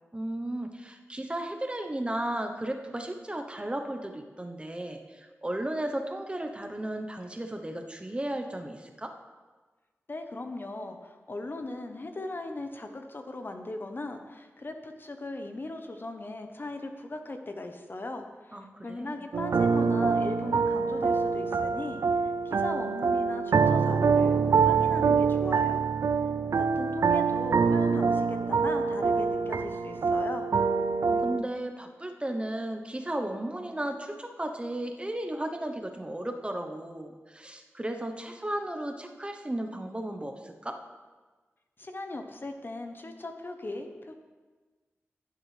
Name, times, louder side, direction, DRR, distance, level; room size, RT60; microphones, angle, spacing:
voice 1, 0.1-9.1 18.5-19.2 31.1-40.8, right 1 dB, 20° right, 5 dB, 1.0 m, -35 dB
voice 2, 10.1-25.8 26.5-30.5 41.8-44.1, left 2 dB, 45° left, 6 dB, 1.0 m, -38 dB
sound 1, 19.3-31.4, right 5 dB, 80° right, 0.4 m, -25 dB
14.0 x 7.7 x 3.4 m, 1.3 s
cardioid pair, 55°, 5 cm